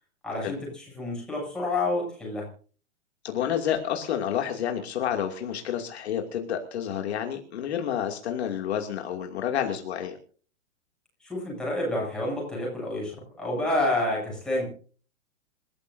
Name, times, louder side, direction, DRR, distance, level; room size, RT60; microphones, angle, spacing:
voice 1, 0.2-2.5 11.2-14.7, left 2 dB, ahead, -3 dB, 7.8 m, -29 dB
voice 2, 3.2-10.2, left 9 dB, 50° left, 3 dB, 2.7 m, -29 dB
27.5 x 14.0 x 2.7 m, 0.42 s
hypercardioid pair, 175°, 41 cm